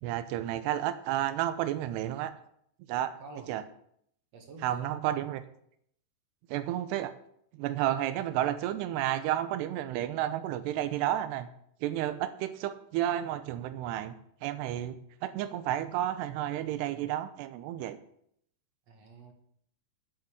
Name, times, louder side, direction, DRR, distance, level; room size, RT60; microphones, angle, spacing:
voice 1, 0.0-2.3 2.9-3.1 3.5-3.6 4.6-5.4 6.5-7.1 7.6-11.5 11.8-14.2 14.4-18.0, right 12 dB, 85° right, 11 dB, 2.9 m, -31 dB
voice 2, 3.2-3.6 4.3-4.9 18.9-19.3, right 3 dB, 65° right, 4 dB, 1.7 m, -48 dB
9.2 x 8.6 x 7.3 m, 0.69 s
omnidirectional pair, 4.8 m